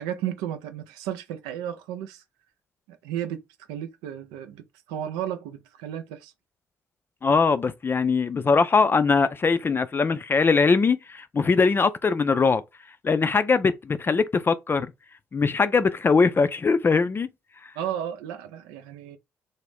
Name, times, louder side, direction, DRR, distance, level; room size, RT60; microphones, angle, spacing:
voice 1, 0.0-2.2 2.9-3.4 3.7-6.3 17.8-19.2, right 10 dB, 80° right, 0.4 m, -33 dB
voice 2, 7.2-12.6 13.0-14.9 15.3-17.3, left 4 dB, 30° left, 0.3 m, -21 dB
2.5 x 2.0 x 3.3 m
hypercardioid pair, 45°, 7 cm